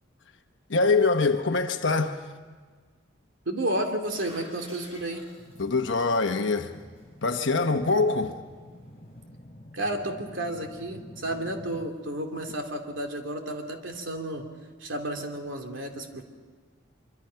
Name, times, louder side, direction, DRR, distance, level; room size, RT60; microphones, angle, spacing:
voice 1, 0.7-2.2 5.6-6.8 7.2-8.4, left 3 dB, 70° left, 1.0 m, -24 dB
voice 2, 3.5-5.2 9.7-14.5 14.8-16.2, right 1 dB, 75° right, 2.7 m, -32 dB
sound 1, 3.6-9.2, equal, 30° right, 7.7 m, -53 dB
sound 2, 5.4-11.9, left 1 dB, 40° left, 4.1 m, -49 dB
25.0 x 24.5 x 5.7 m
head